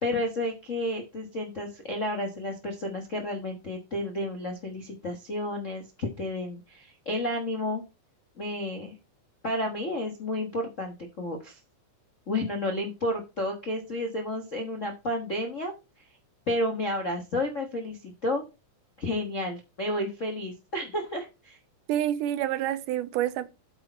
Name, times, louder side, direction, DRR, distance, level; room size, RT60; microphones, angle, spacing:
voice 1, 0.0-7.8 8.4-8.9 9.4-11.6 12.3-15.7 16.5-18.4 19.0-21.6, left 1 dB, 55° left, 0.8 m, -31 dB
voice 2, 21.9-23.5, right 12 dB, 90° right, 2.3 m, -28 dB
8.5 x 6.7 x 4.5 m
omnidirectional pair, 3.6 m